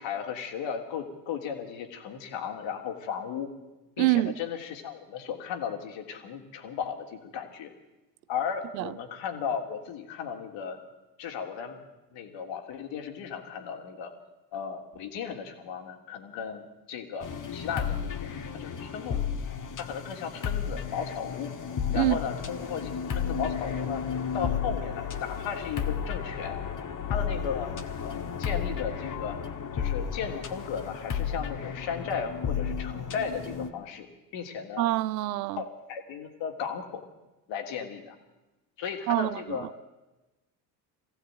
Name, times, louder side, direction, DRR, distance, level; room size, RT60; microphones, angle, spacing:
voice 1, 0.0-3.5 4.0-7.7 8.3-10.8 11.2-11.8 12.1-14.1 14.5-19.2 19.8-21.5 21.9-24.0 24.3-26.6 27.1-27.7 28.0-29.4 29.7-34.9 35.6-37.0 37.5-38.2 38.8-39.7, left 7 dB, 65° left, 3.2 m, -35 dB
voice 2, 4.0-4.3 8.7-8.9 21.9-22.2 34.8-35.6 39.1-39.6, right 16 dB, 85° right, 0.8 m, -26 dB
sound 1, 17.2-33.7, left 7 dB, 40° left, 1.9 m, -33 dB
23.5 x 15.5 x 9.1 m
hypercardioid pair, 70°, 49 cm